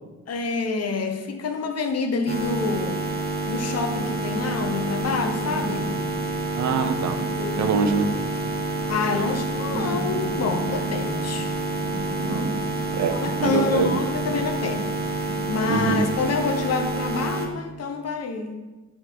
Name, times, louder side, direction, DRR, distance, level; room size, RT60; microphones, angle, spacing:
voice 1, 0.3-3.0 3.3-5.9 7.4-7.8 8.9-11.5 13.1-14.9 15.2-18.5, left 4 dB, 55° left, 6 dB, 0.8 m, -27 dB
sound 1, 2.3-17.5, right 2 dB, 30° right, 1.0 m, -28 dB
sound 2, 3.9-16.0, equal, 5° right, 1.4 m, -37 dB
voice 2, 6.6-7.2 7.6-8.1 12.2-12.5 12.9-14.0 15.7-16.1, right 5 dB, 70° right, 8 dB, 0.7 m, -24 dB
9.2 x 3.8 x 4.5 m, 1.2 s
wide cardioid pair, 135°, 30 cm